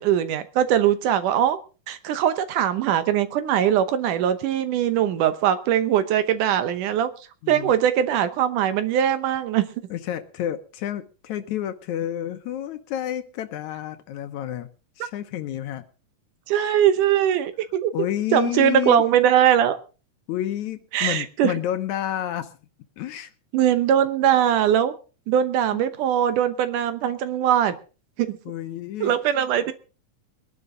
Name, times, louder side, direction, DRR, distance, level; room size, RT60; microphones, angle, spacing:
voice 1, 0.0-1.6 1.9-7.1 7.5-9.6 16.5-17.9 18.3-19.8 20.9-21.5 23.5-24.9 25.3-27.7 28.2-28.4 29.0-29.7, right 10 dB, 75° right, 2.5 m, -21 dB
voice 2, 7.4-7.7 9.9-14.7 15.0-15.8 17.9-19.1 20.3-22.6 23.0-23.3 25.7-25.8 28.5-29.2, left 11 dB, 70° left, 2.1 m, -30 dB
21.5 x 11.0 x 3.8 m
omnidirectional pair, 3.8 m